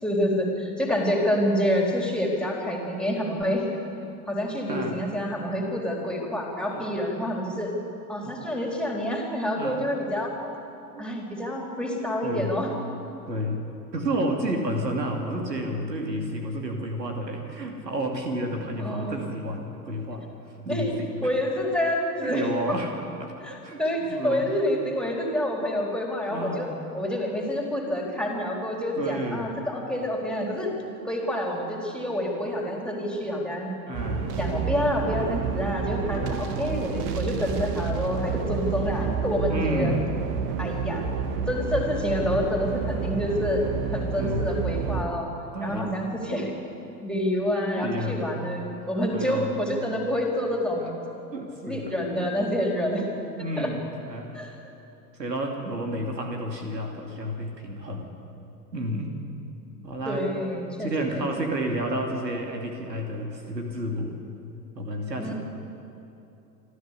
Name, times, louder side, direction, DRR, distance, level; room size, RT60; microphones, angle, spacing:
voice 1, 0.0-3.7 4.3-7.7 8.1-10.4 11.0-12.7 18.8-19.3 20.7-20.9 21.2-22.5 23.4-26.7 26.9-30.7 31.0-33.7 34.4-39.9 40.6-41.0 41.5-43.6 43.9-45.3 45.6-46.5 47.0-51.0 51.6-53.1 53.6-53.7 54.3-54.6 60.1-61.3 65.2-65.3, left 1 dB, ahead, 0 dB, 4.0 m, -27 dB
voice 2, 4.6-5.1 6.7-6.9 8.2-8.3 9.6-9.8 10.9-11.1 12.2-12.6 13.3-13.6 13.9-20.3 20.6-21.3 22.2-22.9 23.2-23.3 23.6-24.5 26.3-26.7 29.0-29.5 33.9-34.3 36.1-36.6 39.5-40.1 44.2-44.5 45.5-46.0 47.6-48.3 49.1-49.6 51.3-52.0 53.3-54.4 55.2-58.2 58.7-59.2 59.8-60.3 60.8-64.2 64.7-65.3, right 1 dB, 80° right, 3 dB, 2.7 m, -31 dB
sound 1, 33.9-45.0, right 6 dB, 45° right, 1.8 m, -29 dB
27.0 x 13.0 x 8.4 m, 2.9 s
figure-of-eight pair, 85°, 49 cm